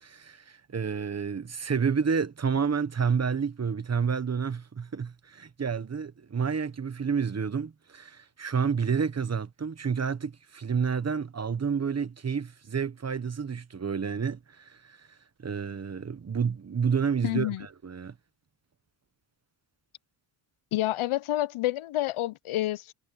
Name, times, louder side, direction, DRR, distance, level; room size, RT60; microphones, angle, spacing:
voice 1, 0.0-15.1 15.4-18.2, right 6 dB, 30° right, 1.2 m, -30 dB
voice 2, 17.2-17.7 20.7-22.9, left 15 dB, 80° left, 0.7 m, -28 dB
cardioid pair, 115°, 49 cm